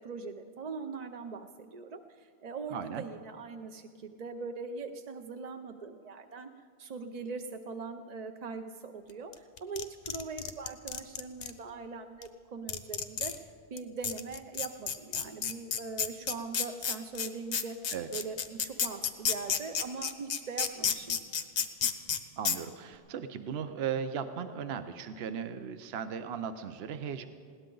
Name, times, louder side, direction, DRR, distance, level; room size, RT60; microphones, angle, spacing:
voice 1, 0.0-6.5 6.8-13.3 13.7-17.8 18.1-21.2, right 4 dB, 45° right, 6 dB, 0.6 m, -41 dB
voice 2, 2.7-3.0 17.9-18.2 22.4-27.3, right 7 dB, 70° right, 9 dB, 0.9 m, -37 dB
sound 1, 9.3-11.5 12.2-12.3 12.7-13.4 13.8-13.9 14.0-22.2 22.4-22.6, left 7 dB, 85° left, 1.2 m, -30 dB
20.5 x 17.5 x 3.9 m, 2.2 s
omnidirectional pair, 1.1 m